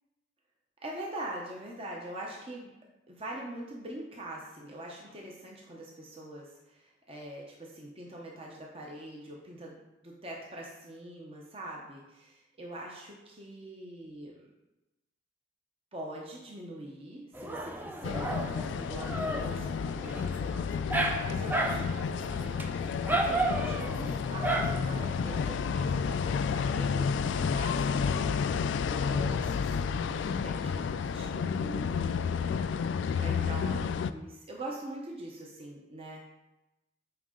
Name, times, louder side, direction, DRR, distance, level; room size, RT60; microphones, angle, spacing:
voice 1, 0.8-2.7 3.1-14.5 15.9-20.9 21.2-22.7 23.1-32.9 33.2-36.3, right 1 dB, 30° right, -2 dB, 0.8 m, -43 dB
Dog, 17.3-25.5, right 2 dB, 10° right, 0.5 m, -34 dB
sound 1, 18.0-34.1, left 6 dB, 75° left, 0.3 m, -31 dB
9.2 x 3.7 x 3.7 m, 0.99 s
head